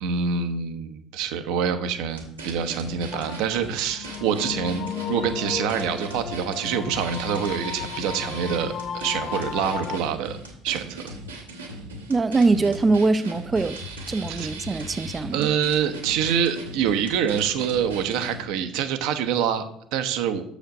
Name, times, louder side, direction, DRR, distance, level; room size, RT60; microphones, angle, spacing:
voice 1, 0.0-10.4 10.6-11.1 12.5-12.7 14.3-14.5 15.3-19.6 19.9-20.4, right 7 dB, 65° right, 0.8 m, -26 dB
sound 1, 2.1-18.4, right 1 dB, 90° right, 1.4 m, -38 dB
sound 2, 3.1-10.0, left 8 dB, 45° left, 0.4 m, -34 dB
voice 2, 12.1-13.8 14.1-15.5, right 3 dB, 25° right, 0.5 m, -22 dB
6.7 x 5.1 x 6.4 m
figure-of-eight pair, 60°, 0 cm